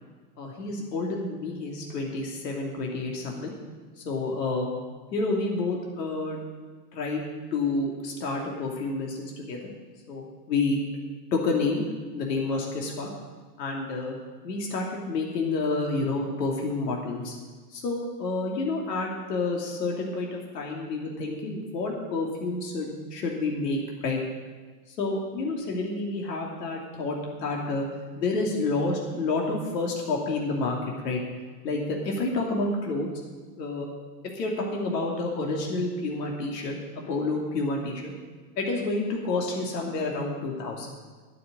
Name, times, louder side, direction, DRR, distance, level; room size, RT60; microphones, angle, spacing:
voice 1, 0.4-3.5 4.0-4.7 5.1-6.4 6.9-7.2 7.5-9.6 10.1-10.8 11.3-11.9 12.1-13.1 13.6-14.2 14.4-17.3 17.7-24.2 25.0-30.8 31.0-31.2 31.6-33.1 33.6-33.9 34.2-36.8 37.1-38.1 38.6-41.0, left 3 dB, 80° left, -1 dB, 2.8 m, -29 dB
12.0 x 6.9 x 9.0 m, 1.4 s
supercardioid pair, 145°, 48 cm